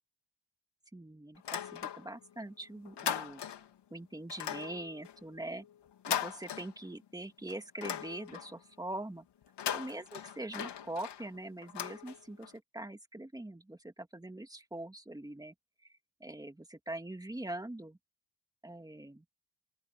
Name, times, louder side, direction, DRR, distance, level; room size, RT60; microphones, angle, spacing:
voice 1, 0.9-3.4 3.9-5.7 6.1-9.2 9.7-15.5 16.2-18.0 18.6-19.2, right 1 dB, 10° right, 2.3 m, -43 dB
sound 1, 1.4-2.3 2.6-3.8 4.3-7.1 7.5-8.6 9.4-12.5, left 9 dB, 75° left, 3.8 m, -39 dB
open air
cardioid pair, 125°, 42 cm